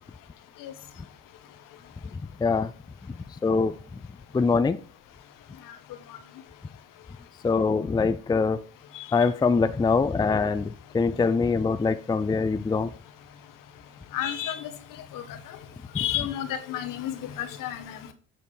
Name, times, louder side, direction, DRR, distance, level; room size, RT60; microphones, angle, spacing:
voice 1, 2.4-2.7 3.4-3.7 4.3-4.8 7.4-8.6 9.1-12.9, left 4 dB, 10° left, 11 dB, 0.4 m, -23 dB
voice 2, 14.1-14.7 15.1-15.2 16.0-18.0, left 11 dB, 65° left, 8 dB, 1.3 m, -31 dB
7.8 x 4.5 x 4.8 m, 0.39 s
supercardioid pair, 65°, 34 cm